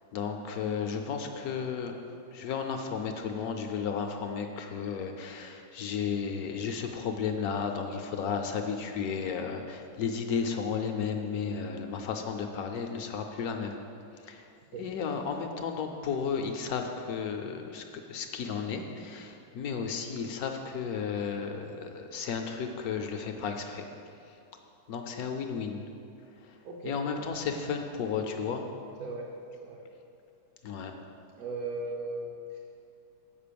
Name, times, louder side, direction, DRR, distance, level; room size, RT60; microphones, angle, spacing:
voice 1, 0.1-1.9 2.3-13.8 14.2-14.4 14.8-23.9 24.3-24.4 24.9-25.8 26.4-26.6 26.8-28.7 30.6-31.0, left 6 dB, 70° left, 4 dB, 1.0 m, -33 dB
voice 2, 26.6-27.0 29.0-29.3 29.6-29.8 31.4-32.6, right 2 dB, 65° right, -2 dB, 1.2 m, -37 dB
7.4 x 5.2 x 6.8 m, 2.5 s
omnidirectional pair, 1.9 m